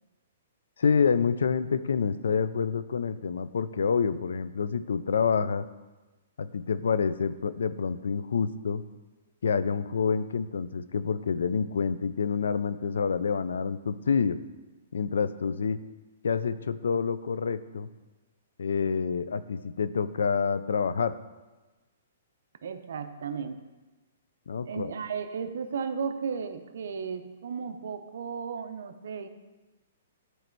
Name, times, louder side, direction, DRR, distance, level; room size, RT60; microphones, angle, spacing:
voice 1, 0.8-5.6 6.4-8.8 9.4-14.4 14.9-15.8 16.2-17.9 18.6-21.1 24.5-24.9, left 6 dB, 90° left, 14 dB, 0.3 m, -27 dB
voice 2, 22.6-23.6 24.6-29.3, right 6 dB, 65° right, 8 dB, 0.6 m, -34 dB
9.0 x 3.2 x 4.5 m, 1.2 s
hypercardioid pair, 170°, 0 cm